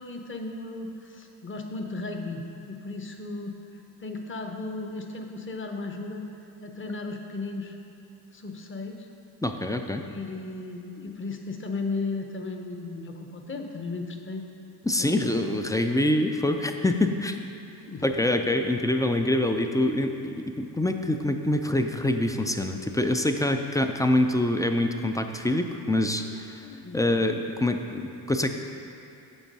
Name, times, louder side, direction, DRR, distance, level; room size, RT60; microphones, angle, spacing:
voice 1, 0.0-3.5 4.0-6.2 6.6-7.8 8.3-9.1 10.0-14.5 15.0-15.3 17.9-18.0 26.6-27.0, left 3 dB, 25° left, 4 dB, 0.9 m, -35 dB
voice 2, 9.4-10.0 14.9-17.3 18.0-26.7 26.9-28.5, left 1 dB, 10° left, 5 dB, 0.3 m, -25 dB
7.2 x 4.5 x 5.3 m, 2.8 s
hypercardioid pair, 55°, 47 cm